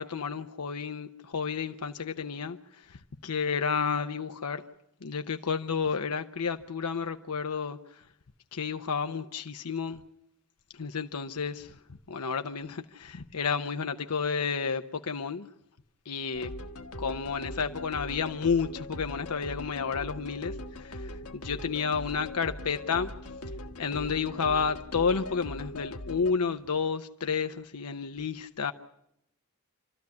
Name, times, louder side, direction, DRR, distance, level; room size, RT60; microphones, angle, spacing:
voice 1, 0.0-2.6 2.9-4.6 5.0-7.8 8.5-10.0 10.7-11.8 12.1-15.5 16.1-16.5 17.0-23.1 23.8-28.7, left 5 dB, 90° left, 0.8 m, -31 dB
sound 1, 16.3-26.3, left 1 dB, 70° left, 1.4 m, -41 dB
27.5 x 13.0 x 9.6 m
head